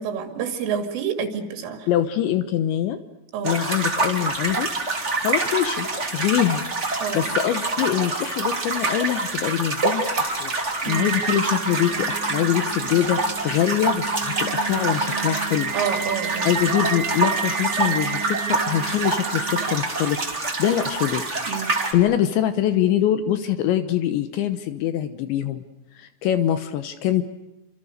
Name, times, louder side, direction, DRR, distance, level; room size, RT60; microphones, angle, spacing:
voice 1, 0.0-1.9 3.3-3.6 7.0-7.3 10.8-11.1 15.7-16.5 21.5-21.7, right 7 dB, 85° right, 6 dB, 5.0 m, -28 dB
voice 2, 1.9-3.0 3.4-4.7 5.1-15.7 16.4-21.2 21.9-25.6 26.0-27.2, left 11 dB, 75° left, 10 dB, 3.2 m, -24 dB
sound 1, 3.4-21.9, right 3 dB, 20° right, 2.5 m, -26 dB
Singing, 10.9-19.7, right 8 dB, 55° right, 3.2 m, -31 dB
29.0 x 26.5 x 6.6 m, 0.99 s
omnidirectional pair, 5.6 m